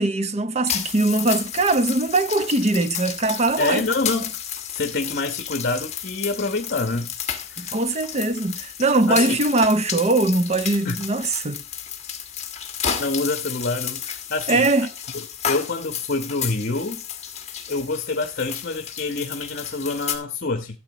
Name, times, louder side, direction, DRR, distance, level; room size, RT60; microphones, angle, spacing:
voice 1, 0.0-3.8 7.6-11.6 14.5-14.9, right 2 dB, 35° right, 0.7 m, -21 dB
sound 1, 0.7-20.2, left 8 dB, 35° left, 1.5 m, -32 dB
voice 2, 3.6-4.3 4.7-7.1 7.6-7.7 9.1-9.4 10.8-11.0 13.0-14.7 15.5-17.0 17.7-20.8, left 3 dB, 50° left, 1.1 m, -26 dB
13.0 x 7.8 x 3.1 m
head